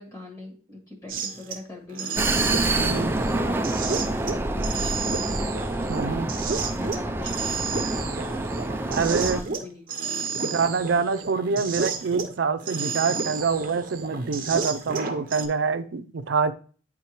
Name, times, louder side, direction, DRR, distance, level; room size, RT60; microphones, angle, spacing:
voice 1, 0.0-5.6 6.1-8.2 8.8-10.5, left 2 dB, 20° left, 0 dB, 1.6 m, -42 dB
sound 1, 1.1-1.6 1.9-12.3 12.6-15.4, right 4 dB, 50° right, 0.8 m, -31 dB
Vehicle, 2.1-9.4, right 2 dB, 10° right, 0.4 m, -27 dB
voice 2, 2.8-3.1 5.9-6.3 8.9-9.4 10.4-16.5, right 5 dB, 80° right, 11 dB, 0.5 m, -26 dB
9.9 x 3.6 x 3.0 m, 0.41 s
head